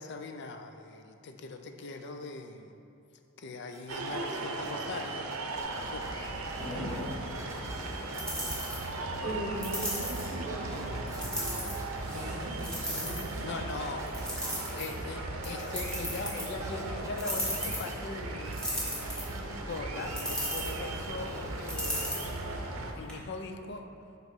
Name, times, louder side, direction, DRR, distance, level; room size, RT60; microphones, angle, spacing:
voice 1, 0.0-2.7 3.4-5.4 5.8-6.0 13.4-18.6 19.7-22.6 23.0-23.9, left 3 dB, 55° left, 6 dB, 0.5 m, -41 dB
sound 1, 3.7-21.7, right 2 dB, 15° right, 0.5 m, -50 dB
sound 2, 3.9-22.9, right 2 dB, 75° right, 0.6 m, -38 dB
voice 2, 5.5-9.2 13.0-13.7, left 1 dB, 35° left, -13 dB, 1.4 m, -58 dB
sound 3, 5.6-23.1, equal, 5° left, 1.3 m, -38 dB
voice 3, 9.2-11.3 12.0-13.3, right 1 dB, 35° right, -5 dB, 1.0 m, -39 dB
7.9 x 3.0 x 5.2 m, 2.6 s
head